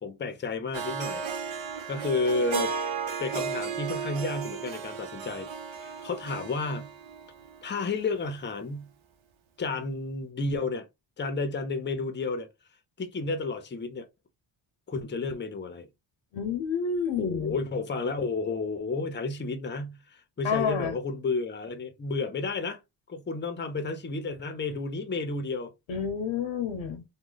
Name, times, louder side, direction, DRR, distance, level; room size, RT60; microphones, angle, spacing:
voice 1, 0.0-1.6 1.9-2.7 3.2-6.9 7.6-8.9 9.6-10.9 11.2-12.5 13.0-14.1 14.9-15.9 17.2-22.8 23.1-25.7, left 3 dB, 25° left, 0.5 m, -32 dB
Harp, 0.7-7.9, right 6 dB, 80° right, 0.8 m, -34 dB
voice 2, 16.3-17.6 20.4-21.0 25.9-27.0, left 6 dB, 85° left, 0.8 m, -29 dB
3.1 x 2.1 x 3.8 m
wide cardioid pair, 115°, 46 cm